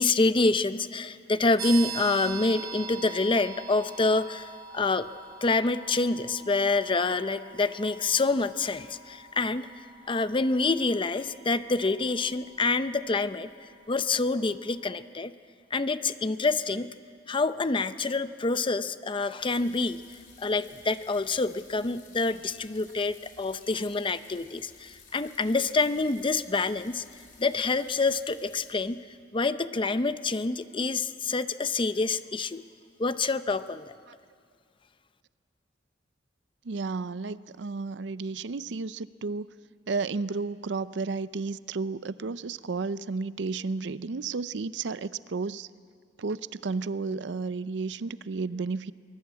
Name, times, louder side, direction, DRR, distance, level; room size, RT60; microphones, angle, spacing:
voice 1, 0.0-5.1 5.4-13.5 13.9-15.3 15.7-16.9 17.3-20.0 20.4-27.0 27.4-29.0 29.3-32.6 33.0-33.9, left 3 dB, 30° left, 12 dB, 0.6 m, -27 dB
sound 1, 1.6-14.1, right 5 dB, 25° right, 1.9 m, -43 dB
sound 2, 19.4-28.7, left 5 dB, 50° left, 4.7 m, -55 dB
voice 2, 36.6-39.5 39.9-45.7 46.2-48.9, right 4 dB, 75° right, 16 dB, 0.5 m, -32 dB
23.0 x 20.0 x 8.5 m, 2.2 s
head